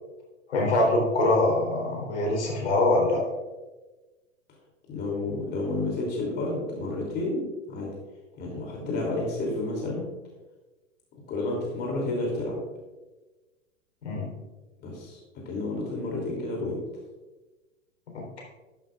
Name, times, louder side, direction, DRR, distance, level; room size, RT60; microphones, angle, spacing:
voice 1, 0.5-3.2 14.0-14.3 18.1-18.4, left 2 dB, 60° left, -1 dB, 3.6 m, -24 dB
voice 2, 4.9-7.9 8.3-10.1 11.3-12.6 14.8-16.8, left 2 dB, 25° left, -2 dB, 2.9 m, -30 dB
12.0 x 11.5 x 2.4 m, 1.2 s
figure-of-eight pair, 100°, 39 cm